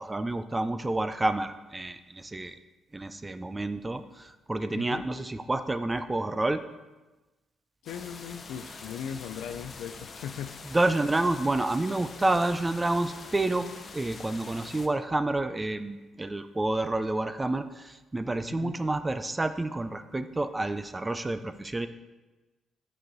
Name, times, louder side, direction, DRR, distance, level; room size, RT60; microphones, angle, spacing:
voice 1, 0.0-2.5 2.9-6.6 10.7-13.7 13.9-21.9, right 2 dB, 20° right, 11 dB, 0.4 m, -29 dB
voice 2, 4.7-5.1 7.8-10.6 18.5-18.8, left 8 dB, 90° left, 8 dB, 0.4 m, -38 dB
sound 1, 7.9-14.9, left 4 dB, 40° left, 0.8 m, -45 dB
7.7 x 6.2 x 4.0 m, 1.2 s
cardioid pair, 90°, 0 cm